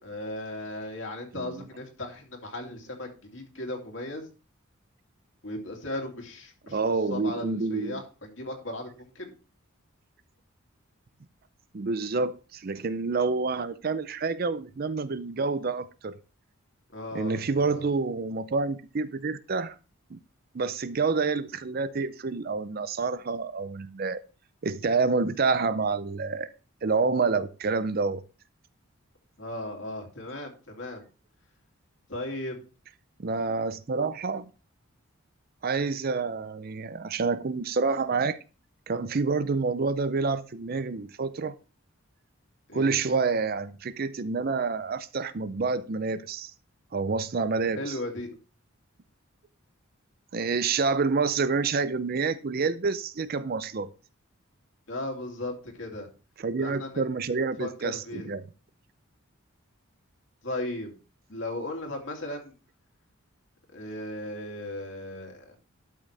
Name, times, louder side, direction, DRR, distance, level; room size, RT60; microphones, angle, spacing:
voice 1, 0.0-4.3 5.4-6.8 7.1-9.4 16.9-17.9 29.4-31.0 32.1-32.6 42.7-43.0 47.7-48.4 54.9-56.1 56.6-57.0 57.6-58.3 60.4-61.0 61.3-62.5 63.7-65.5, left 1 dB, 60° left, 2.6 m, -36 dB
voice 2, 6.7-8.0 11.7-16.2 17.1-19.7 20.1-20.2 20.5-24.2 24.6-26.5 26.8-28.2 33.2-34.5 35.6-38.4 38.9-41.5 42.7-46.5 46.9-47.9 50.3-53.9 56.4-58.5, right 4 dB, 45° right, 0.5 m, -28 dB
12.0 x 6.3 x 3.3 m
head